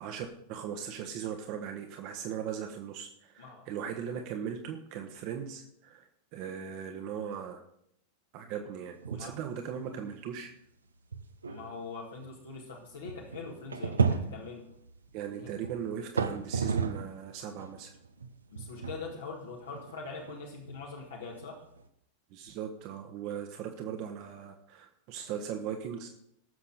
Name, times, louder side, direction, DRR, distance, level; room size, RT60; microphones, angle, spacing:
voice 1, 0.0-6.1 6.3-7.6 8.3-10.5 15.1-17.9 22.3-26.1, right 8 dB, 45° right, 4 dB, 1.2 m, -38 dB
voice 2, 3.4-3.7 9.1-9.3 11.5-14.7 15.3-15.5 18.5-21.6, left 4 dB, 65° left, -2 dB, 1.9 m, -43 dB
sound 1, 9.0-9.4 9.8-9.9 10.5-10.6 11.1-17.2 17.6-21.9, right 5 dB, 75° right, 0.8 m, -34 dB
19.0 x 7.1 x 4.1 m, 0.73 s
figure-of-eight pair, 90°, 0 cm